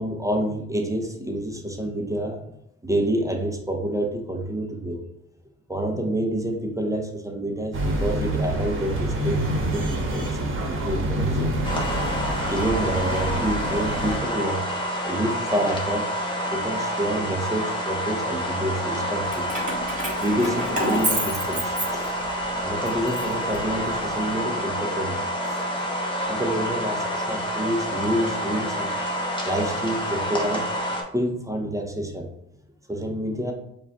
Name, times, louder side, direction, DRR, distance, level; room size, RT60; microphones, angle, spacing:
voice 1, 0.0-2.4 2.8-5.0 5.7-11.5 12.5-14.7 15.0-16.1 16.5-19.5 19.8-22.1 22.6-25.6 26.3-28.9 29.4-30.7 31.1-32.3 32.9-33.5, right 1 dB, 10° right, 2 dB, 0.7 m, -28 dB
sound 1, 7.7-14.2, right 1 dB, 45° right, 1.1 m, -27 dB
sound 2, 11.6-31.0, equal, 15° left, 1.0 m, -28 dB
Keys jangling, 19.2-22.4 22.9-24.1, right 1 dB, 25° right, 1.5 m, -30 dB
4.8 x 2.4 x 3.5 m, 0.81 s
cardioid pair, 90°, 30 cm